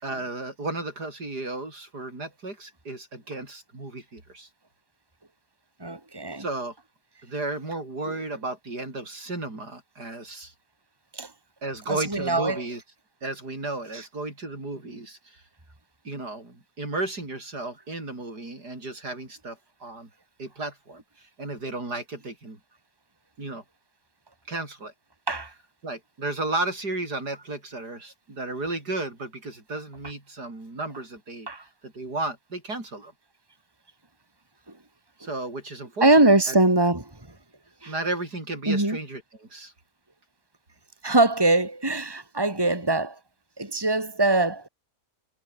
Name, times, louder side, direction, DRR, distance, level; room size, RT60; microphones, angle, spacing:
voice 1, 0.0-4.5 6.4-6.7 7.2-10.5 11.6-12.8 13.2-15.4 16.0-20.1 20.4-22.6 23.4-23.6 24.5-24.9 25.8-31.5 31.8-33.1 35.2-36.5 37.9-39.7, right 2 dB, 70° right, 6.5 m, -34 dB
voice 2, 5.8-6.4 11.1-11.3 11.9-12.6 25.3-25.5 31.5-31.6 36.0-37.1 37.8-37.9 38.7-39.0 41.0-43.2 43.6-44.7, right 2 dB, 15° right, 3.6 m, -22 dB
omnidirectional pair, 1.8 m